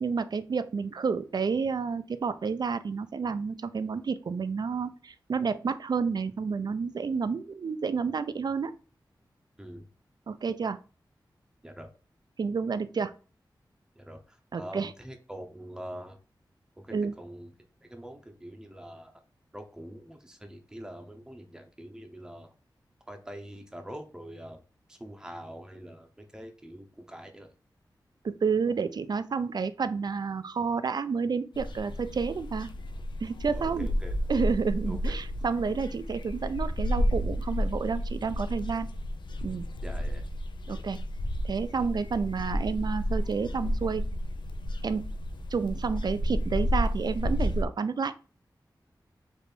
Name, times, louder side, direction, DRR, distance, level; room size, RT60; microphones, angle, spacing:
voice 1, 0.0-8.7 10.3-10.8 12.4-13.1 14.5-14.9 16.9-17.1 28.2-32.7 33.2-33.9 34.3-38.9 39.4-39.7 40.7-41.0 41.4-44.0 44.8-45.0 45.5-48.1, right 5 dB, 60° right, 12 dB, 0.4 m, -30 dB
voice 2, 14.0-16.2 16.8-17.5 17.8-19.1 19.5-22.5 23.1-24.6 24.9-27.5 33.5-34.2 34.9-35.3 39.8-40.2, equal, 10° right, 4 dB, 0.7 m, -44 dB
sound 1, 31.5-47.6, equal, 85° left, 0.4 m, -31 dB
3.4 x 2.5 x 4.3 m, 0.36 s
wide cardioid pair, 60°, 8 cm